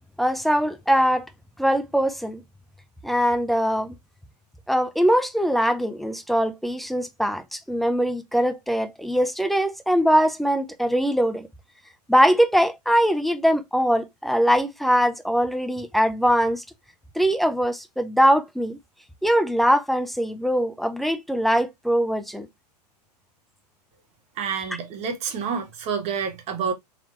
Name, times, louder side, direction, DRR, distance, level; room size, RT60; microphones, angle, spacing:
voice 1, 0.2-1.3 1.6-2.4 3.0-3.9 4.7-11.5 12.1-16.6 17.1-18.8 19.2-22.5, equal, ahead, 0.5 m, -22 dB
voice 2, 24.4-26.7, right 6 dB, 30° right, 1.2 m, -28 dB
4.1 x 2.9 x 3.0 m
figure-of-eight pair, 100°, 21 cm